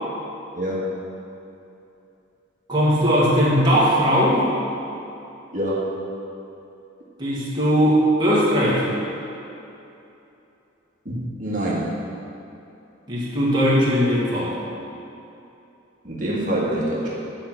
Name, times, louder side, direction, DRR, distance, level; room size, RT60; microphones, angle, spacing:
voice 1, 2.7-4.5 7.2-9.0 13.1-14.6, equal, 25° right, -7 dB, 1.8 m, -19 dB
voice 2, 5.5-5.8 11.0-11.9 16.0-17.1, right 1 dB, 40° right, -6 dB, 1.7 m, -25 dB
10.5 x 4.5 x 6.1 m, 2.8 s
head